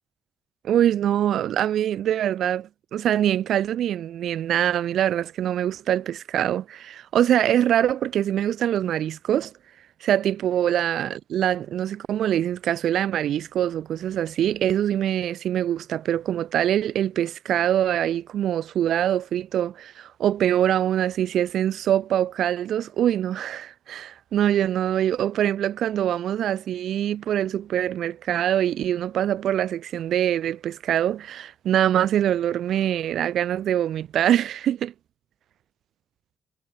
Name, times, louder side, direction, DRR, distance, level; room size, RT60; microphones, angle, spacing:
voice 1, 0.6-9.5 10.0-34.9, right 11 dB, 70° right, 2.6 m, -24 dB
cardioid pair, 90°, 0 cm